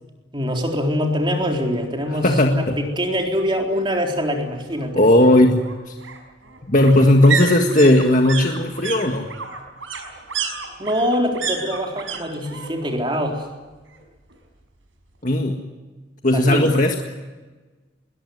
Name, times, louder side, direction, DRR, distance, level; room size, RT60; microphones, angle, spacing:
voice 1, 0.3-4.9 10.8-13.5 16.3-16.7, equal, 25° right, 2 dB, 3.9 m, -24 dB
sound 1, 1.3-1.4 1.8-1.9 2.1-3.1 4.4-12.2 12.4-13.0 13.3-14.3 14.6-14.7, right 6 dB, 90° right, 5.8 m, -31 dB
voice 2, 2.1-2.8 4.9-6.0 6.6-9.3 15.2-15.6 16.2-17.0, left 1 dB, 40° left, 3 dB, 1.7 m, -16 dB
21.0 x 20.0 x 9.4 m, 1.3 s
head